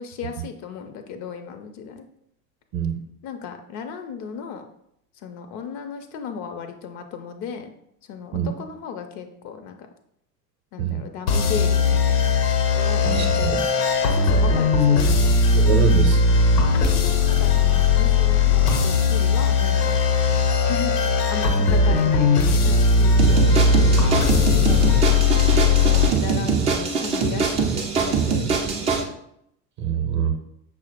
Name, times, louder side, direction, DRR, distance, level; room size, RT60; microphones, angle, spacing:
voice 1, 0.0-2.1 3.2-4.6 5.2-7.7 8.1-9.8 10.7-12.4 12.8-13.5 14.0-15.4 16.0-16.2 16.7-19.9 20.7-24.2 24.5-25.2 25.8-29.1, left 6 dB, 35° left, 7 dB, 0.5 m, -35 dB
sound 1, 11.3-26.1, left 4 dB, 70° left, 0.9 m, -18 dB
voice 2, 13.0-13.6 15.5-16.4 29.8-30.3, right 7 dB, 45° right, 2 dB, 0.7 m, -25 dB
sound 2, 23.2-29.0, right 5 dB, 15° right, 0.3 m, -23 dB
5.9 x 2.1 x 4.3 m, 0.75 s
figure-of-eight pair, 70°, 49 cm